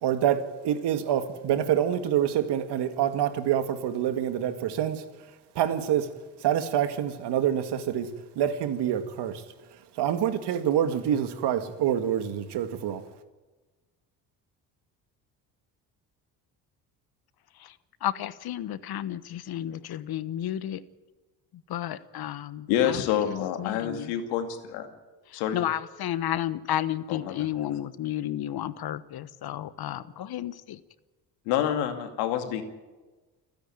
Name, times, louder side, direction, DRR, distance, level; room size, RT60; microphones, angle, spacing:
voice 1, 0.0-5.1 5.6-6.1 6.4-8.1 8.4-9.4 10.0-13.0, right 10 dB, 65° right, 9 dB, 2.1 m, -26 dB
voice 2, 18.0-20.8 21.5-24.1 25.3-30.8, left 12 dB, 55° left, 15 dB, 1.2 m, -32 dB
voice 3, 22.7-24.9 25.3-25.6 27.1-27.4 31.5-32.6, left 10 dB, 80° left, 6 dB, 2.4 m, -27 dB
29.0 x 10.0 x 9.2 m, 1.2 s
hypercardioid pair, 60°, 43 cm